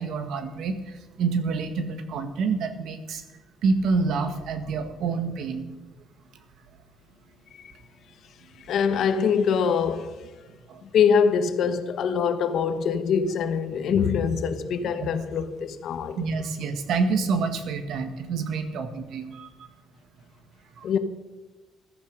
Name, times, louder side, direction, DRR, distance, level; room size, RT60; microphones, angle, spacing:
voice 1, 0.0-3.2 3.6-5.7 10.7-10.8 15.0-15.1 16.2-19.7 20.8-20.9, right 4 dB, 70° right, 1.7 m, -27 dB
voice 2, 8.6-10.3 10.8-16.4 20.8-21.0, left 6 dB, 60° left, 1.3 m, -24 dB
15.0 x 13.0 x 5.3 m
cardioid pair, 130°, 0 cm